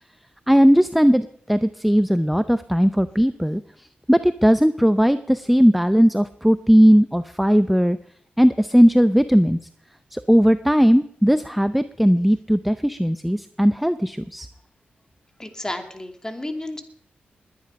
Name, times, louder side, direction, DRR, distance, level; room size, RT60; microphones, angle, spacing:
voice 1, 0.5-8.0 8.4-9.6 10.1-14.5, equal, ahead, 13 dB, 0.6 m, -18 dB
voice 2, 15.4-16.8, left 1 dB, 15° left, 6 dB, 2.5 m, -32 dB
20.5 x 10.0 x 5.3 m, 0.64 s
cardioid pair, 60°, 4 cm